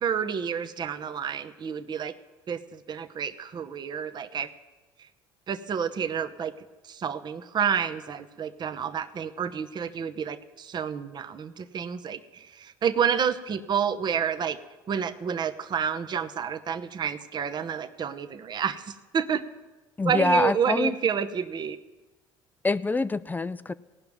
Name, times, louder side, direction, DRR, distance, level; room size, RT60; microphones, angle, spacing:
voice 1, 0.0-2.1 2.5-4.5 5.5-6.5 6.8-14.6 14.9-19.4 20.0-21.8, right 7 dB, 40° right, 9 dB, 0.8 m, -29 dB
voice 2, 20.0-20.9 22.6-23.7, left 3 dB, 15° left, 16 dB, 0.4 m, -25 dB
17.0 x 5.8 x 9.2 m, 1.2 s
supercardioid pair, 80°, 11 cm